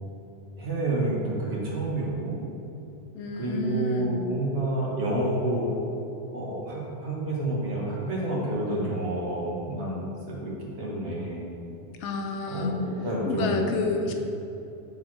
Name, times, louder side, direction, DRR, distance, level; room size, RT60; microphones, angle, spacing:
voice 1, 0.6-2.4 3.4-5.7 6.3-11.5 12.5-13.6 14.0-14.1, right 1 dB, 70° right, -4 dB, 1.5 m, -29 dB
voice 2, 3.1-4.1 12.0-12.8 13.3-14.1, left 3 dB, 85° left, 3 dB, 1.0 m, -29 dB
7.3 x 4.0 x 3.2 m, 2.9 s
omnidirectional pair, 1.2 m